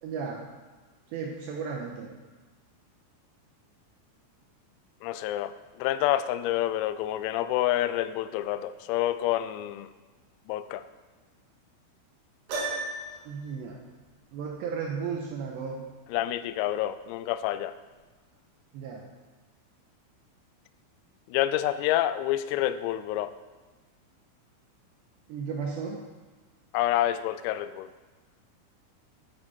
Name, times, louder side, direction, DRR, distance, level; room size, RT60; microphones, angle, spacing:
voice 1, 0.0-0.4 1.1-2.1 13.3-13.8 14.3-15.8 18.7-19.0 25.3-26.0, right 5 dB, 80° right, 0 dB, 2.6 m, -34 dB
voice 2, 5.0-9.9 10.5-10.8 16.1-17.7 21.3-23.3 26.7-27.9, left 13 dB, 90° left, 13 dB, 3.3 m, -28 dB
Piano, 12.5-13.3, right 2 dB, 60° right, 3.8 m, -33 dB
11.5 x 8.8 x 4.1 m, 1.3 s
omnidirectional pair, 6.0 m